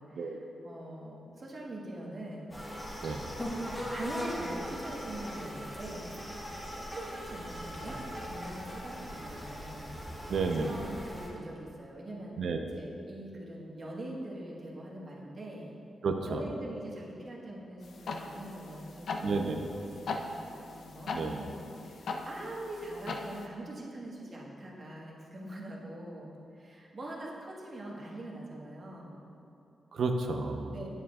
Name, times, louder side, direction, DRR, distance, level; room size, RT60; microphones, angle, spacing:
voice 1, 0.0-2.5 3.9-6.1 6.7-10.0 10.5-12.4 12.7-15.7 16.2-19.4 19.8-29.3 30.7-30.9, right 1 dB, 40° right, -4 dB, 1.4 m, -43 dB
sound 1, 2.5-11.3, equal, 15° left, 1.7 m, -40 dB
voice 2, 10.3-10.7 12.4-12.6 16.0-16.4 19.2-19.7 21.1-21.4 29.9-30.7, right 4 dB, 70° right, 4 dB, 0.6 m, -31 dB
Digital Clock, 17.8-23.5, left 3 dB, 70° left, 0.5 m, -40 dB
9.4 x 8.6 x 2.4 m, 2.6 s
wide cardioid pair, 115°, 0 cm